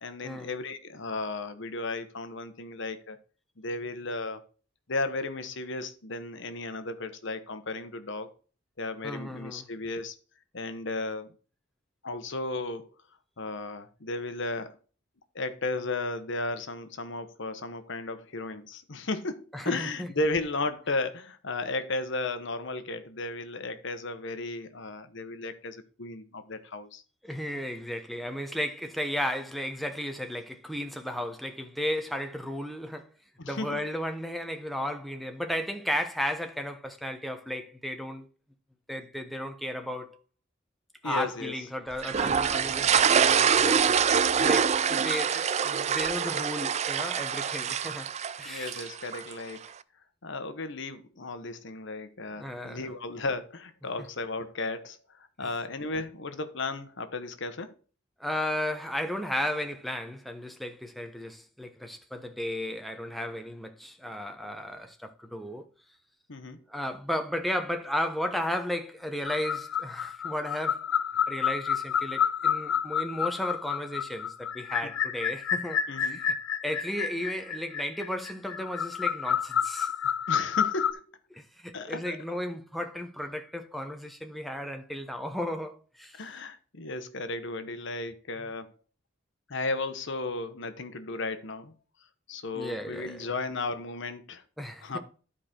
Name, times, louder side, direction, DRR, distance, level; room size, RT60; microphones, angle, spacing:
voice 1, 0.0-3.2 3.6-4.4 4.9-8.3 8.8-10.1 10.5-11.3 12.0-12.9 13.4-14.8 15.3-27.0 33.4-33.8 41.0-41.5 48.4-49.6 50.2-55.0 55.4-57.7 66.3-66.6 74.8-74.9 75.9-76.2 80.3-81.0 81.7-82.2 86.1-88.7 89.5-91.7 92.3-94.4 94.8-95.0, left 2 dB, 60° left, 1.1 m, -34 dB
voice 2, 9.0-9.7 19.5-20.1 27.2-33.1 33.5-38.3 38.9-40.2 41.0-43.9 44.4-48.1 48.4-48.8 52.4-52.9 55.4-55.5 58.2-65.7 66.7-70.8 71.3-75.8 76.1-76.3 76.6-79.9 81.3-86.2 92.5-93.3 94.6-95.0, equal, ahead, 1.0 m, -34 dB
sound 1, 42.0-49.3, right 7 dB, 35° right, 0.4 m, -25 dB
sound 2, 69.3-80.9, left 8 dB, 80° left, 0.6 m, -29 dB
11.5 x 5.0 x 4.4 m
head